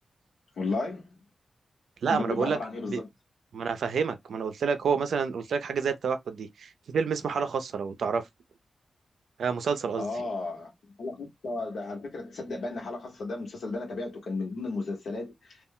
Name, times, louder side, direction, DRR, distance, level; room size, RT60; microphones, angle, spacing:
voice 1, 0.6-1.2 2.1-3.1 10.0-10.7 11.0-15.6, left 3 dB, 80° left, 1.0 m, -34 dB
voice 2, 2.0-2.6 2.9-3.0 3.5-8.2 9.4-10.1, right 6 dB, 85° right, 0.5 m, -28 dB
2.3 x 2.1 x 3.6 m
wide cardioid pair, 95°, 0 cm